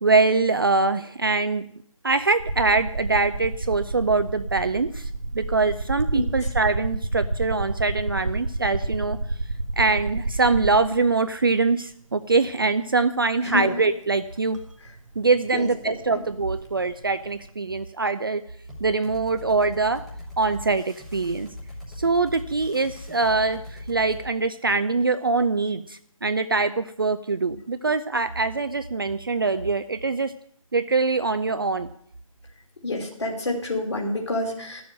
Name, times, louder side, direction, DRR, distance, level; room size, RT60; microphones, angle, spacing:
voice 1, 0.0-1.6 2.0-5.1 5.3-9.2 9.8-14.6 15.2-18.4 18.8-20.0 20.4-21.5 22.0-30.3 30.7-31.9, right 3 dB, 40° right, 10 dB, 0.4 m, -23 dB
sound 1, 2.4-11.2 12.3-12.4 14.5-14.6 14.9-17.4, right 2 dB, 60° right, 1.1 m, -30 dB
voice 2, 13.4-13.8 15.5-16.2 32.8-34.8, left 2 dB, 50° left, 2 dB, 2.9 m, -28 dB
sound 2, 18.7-24.3, left 1 dB, ahead, 1.0 m, -40 dB
12.0 x 7.0 x 7.8 m, 0.65 s
figure-of-eight pair, 155°, 18 cm